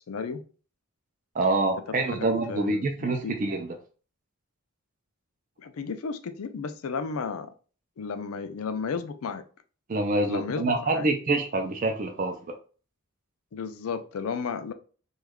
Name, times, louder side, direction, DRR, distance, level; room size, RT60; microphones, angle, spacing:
voice 1, 0.1-0.4 2.0-3.3 5.6-7.5 8.0-9.4 10.3-11.1 13.5-14.7, left 5 dB, 80° left, 9 dB, 0.4 m, -33 dB
voice 2, 1.3-3.7 9.9-12.4, right 2 dB, 35° right, 3 dB, 0.4 m, -26 dB
3.0 x 2.3 x 3.5 m, 0.39 s
head